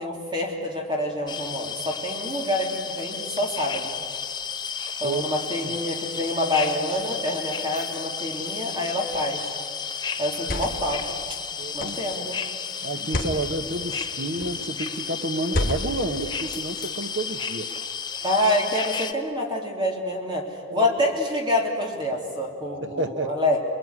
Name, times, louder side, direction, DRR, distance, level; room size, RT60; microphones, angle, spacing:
voice 1, 0.0-3.9 5.0-9.5 10.2-11.0 11.7-12.4 18.2-20.4 20.7-23.6, left 1 dB, 20° right, 0 dB, 3.6 m, -27 dB
sound 1, 1.3-19.1, left 6 dB, 20° left, 0.9 m, -33 dB
sound 2, 9.1-9.4 10.2-11.0 11.8-12.1 13.0-13.4 14.3-14.7 15.5-16.1, left 1 dB, 40° left, 3.0 m, -30 dB
voice 2, 11.6-12.0 12.8-17.7 20.7-20.9 22.8-23.3, right 2 dB, 55° right, 8 dB, 1.4 m, -30 dB
28.5 x 21.5 x 9.9 m, 2.2 s
head